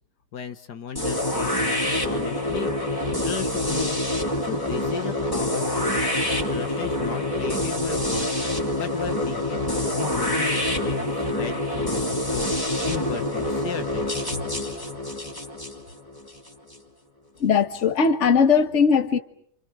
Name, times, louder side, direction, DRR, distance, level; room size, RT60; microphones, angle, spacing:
voice 1, 0.3-2.7 3.2-4.0 4.4-14.2, left 7 dB, 75° left, 1.9 m, -35 dB
sound 1, 0.9-16.8, left 1 dB, 10° left, 3.5 m, -26 dB
voice 2, 17.4-19.2, left 6 dB, 45° left, 1.7 m, -19 dB
29.5 x 28.5 x 6.1 m
omnidirectional pair, 1.8 m